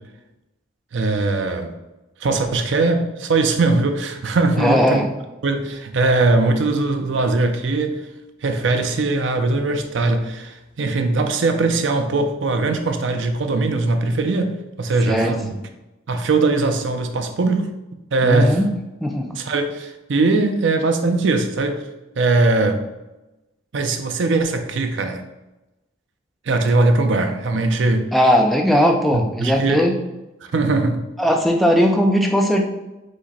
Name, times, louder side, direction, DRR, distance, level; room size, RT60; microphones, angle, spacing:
voice 1, 0.9-1.7 2.2-5.0 5.4-8.0 8.4-15.6 16.1-17.7 18.1-18.6 19.3-21.9 22.2-22.8 23.7-25.2 26.5-28.1 29.1-29.9 30.4-31.0, right 3 dB, 70° right, 6 dB, 0.5 m, -20 dB
voice 2, 4.6-5.1 15.1-15.3 18.2-18.7 19.0-19.3 28.1-29.9 31.2-32.7, equal, ahead, 1 dB, 0.4 m, -18 dB
4.8 x 2.1 x 4.1 m, 1.0 s
head